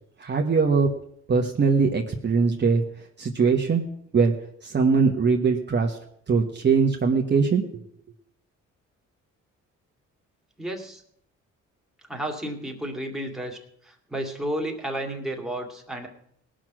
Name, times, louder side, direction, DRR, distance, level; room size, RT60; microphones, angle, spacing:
voice 1, 0.2-0.9 1.3-2.8 3.2-3.8 4.1-4.3 4.6-6.0 6.3-7.8, right 5 dB, 35° right, 1 dB, 1.3 m, -21 dB
voice 2, 10.6-11.0 12.1-13.6 13.9-16.1, right 1 dB, ahead, 1 dB, 2.4 m, -32 dB
18.5 x 6.3 x 6.1 m, 0.68 s
cardioid pair, 90°, 30 cm